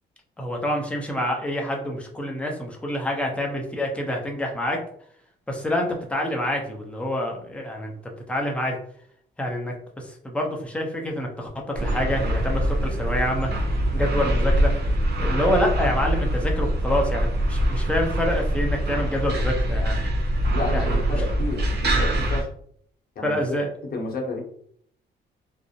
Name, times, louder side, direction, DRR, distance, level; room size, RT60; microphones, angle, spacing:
voice 1, 0.4-4.8 5.5-7.9 8.3-8.8 9.4-14.7 15.2-20.1 20.7-21.0 23.2-23.7, left 1 dB, 5° left, 0 dB, 0.6 m, -27 dB
sound 1, 11.8-22.4, right 1 dB, 55° right, 0.7 m, -24 dB
voice 2, 20.5-22.5 23.2-23.4 23.9-24.4, left 3 dB, 50° left, 0 dB, 0.8 m, -31 dB
2.4 x 2.0 x 2.7 m, 0.63 s
cardioid pair, 90°, 20 cm